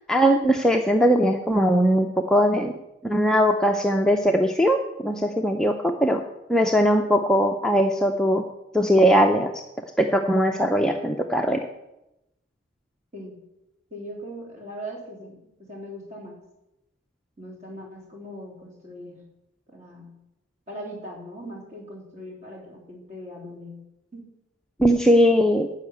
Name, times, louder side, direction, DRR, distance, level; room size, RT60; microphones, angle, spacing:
voice 1, 0.1-2.7 3.0-6.2 6.5-8.4 8.7-9.6 10.0-11.6 24.8-25.7, equal, 5° left, 2 dB, 0.5 m, -20 dB
voice 2, 13.1-13.4 13.9-16.4 17.4-19.3 19.7-20.2 20.7-23.8 24.1-24.2, equal, 35° right, -1 dB, 3.0 m, -40 dB
11.5 x 5.7 x 8.5 m, 0.92 s
head